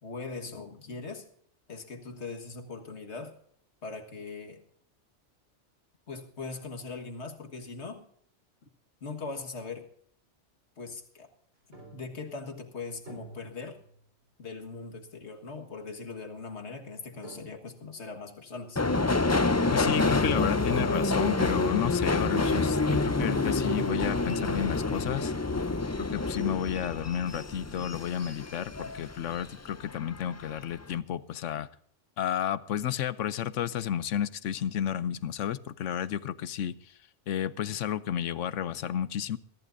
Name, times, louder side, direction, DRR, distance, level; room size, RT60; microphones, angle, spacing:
voice 1, 0.0-1.3 1.7-3.4 3.8-4.7 6.1-8.1 9.0-9.9 10.8-11.3 11.9-13.8 14.4-18.8, left 4 dB, 65° left, 1.9 m, -40 dB
sound 1, 11.7-12.6 13.1-14.2 14.6-14.7 15.6-15.7 16.8-16.9 17.2-18.0, right 2 dB, 70° right, 4.8 m, -50 dB
Subway metro underground, 18.8-29.5 29.8-30.6 30.8-31.0, left 3 dB, 20° left, 0.4 m, -28 dB
voice 2, 19.7-25.3 26.0-31.7 32.2-37.0 37.3-39.4, left 10 dB, 85° left, 1.0 m, -32 dB
22.5 x 15.0 x 2.6 m
omnidirectional pair, 1.2 m